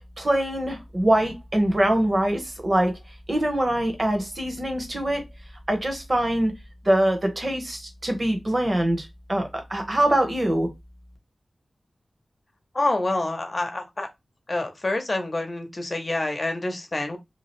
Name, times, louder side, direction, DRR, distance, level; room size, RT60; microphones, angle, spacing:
voice 1, 0.2-2.9 3.3-5.2 5.7-6.5 6.8-10.7, right 1 dB, 30° right, 0.9 m, -23 dB
voice 2, 12.7-14.1 14.5-17.2, left 2 dB, 35° left, 0.7 m, -27 dB
2.8 x 2.4 x 3.1 m
wide cardioid pair, 100°, 0 cm